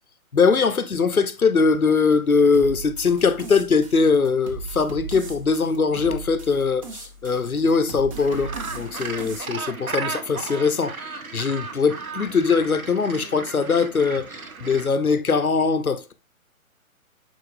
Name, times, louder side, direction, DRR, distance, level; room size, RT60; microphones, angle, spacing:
voice 1, 0.3-16.1, left 5 dB, 85° left, 1.0 m, -21 dB
sound 1, 2.5-9.4, right 3 dB, 25° right, 0.8 m, -38 dB
Gull seagull, 8.2-14.9, right 4 dB, 75° right, 1.1 m, -35 dB
8.2 x 4.4 x 2.6 m
figure-of-eight pair, 135°, 42 cm